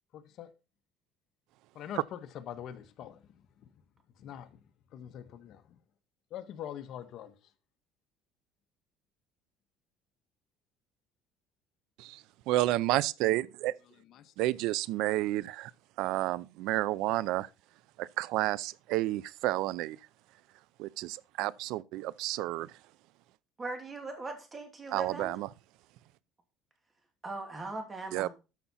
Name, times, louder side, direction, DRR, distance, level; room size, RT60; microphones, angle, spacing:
voice 1, 0.1-0.5 1.7-3.2 3.6-3.7 4.2-4.6 4.9-5.8 6.3-7.3 14.0-14.6, left 10 dB, 55° left, 1.3 m, -44 dB
voice 2, 12.5-13.7 14.4-15.7 16.0-17.5 18.0-20.0 20.8-22.7 24.9-25.5 28.1-28.3, right 16 dB, 75° right, 0.5 m, -30 dB
voice 3, 23.6-25.3 27.2-28.3, right 2 dB, 20° right, 2.8 m, -39 dB
13.0 x 5.8 x 4.2 m
cardioid pair, 125°, 0 cm